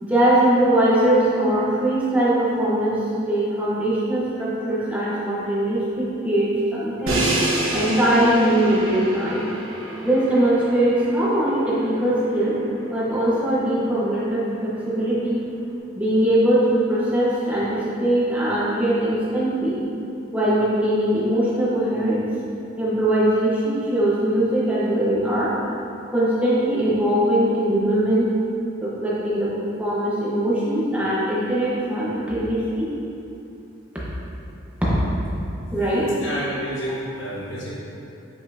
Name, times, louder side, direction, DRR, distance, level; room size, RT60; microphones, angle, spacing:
voice 1, 0.0-3.0 3.3-7.2 7.7-9.5 10.0-12.6 12.9-15.4 15.9-19.8 20.3-22.3 22.8-25.5 26.1-28.3 28.8-29.5 29.8-32.9 34.8-35.0 35.7-36.1, right 1 dB, 5° right, -9 dB, 1.4 m, -21 dB
Crash cymbal, 7.1-13.0, right 1 dB, 90° right, 1.3 m, -29 dB
voice 2, 35.8-37.7, equal, 70° left, -5 dB, 1.4 m, -30 dB
7.7 x 5.8 x 2.9 m, 2.7 s
head